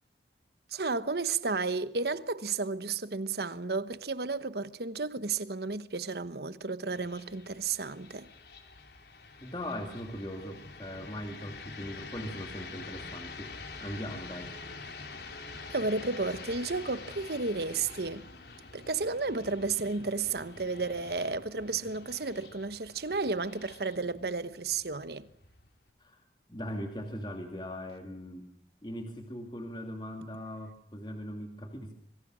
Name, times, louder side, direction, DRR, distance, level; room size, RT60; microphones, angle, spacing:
voice 1, 0.7-8.3 15.7-18.3 18.7-25.3, right 4 dB, 65° right, 1.1 m, -32 dB
sound 1, 6.9-25.9, left 4 dB, 65° left, 3.6 m, -47 dB
voice 2, 9.4-13.5 13.8-14.5 26.0-26.2 26.5-28.5 28.8-32.0, equal, 25° left, 2.4 m, -40 dB
26.0 x 24.5 x 6.3 m
head